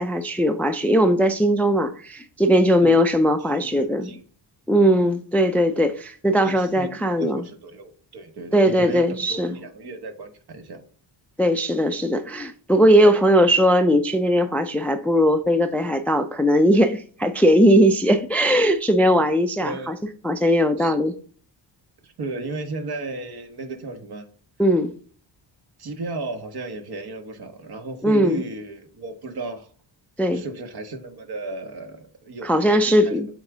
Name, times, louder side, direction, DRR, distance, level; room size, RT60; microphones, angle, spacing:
voice 1, 0.0-4.1 4.7-7.5 8.5-9.5 11.4-20.0 20.2-21.2 24.6-24.9 28.0-28.4 30.2-30.4 32.4-33.3, equal, 5° left, 0.4 m, -19 dB
voice 2, 2.8-4.2 6.4-10.8 19.6-20.0 20.8-21.0 22.0-24.2 25.8-29.7 30.3-33.2, right 3 dB, 55° right, 1.4 m, -35 dB
7.3 x 3.5 x 3.9 m
wide cardioid pair, 130°, 44 cm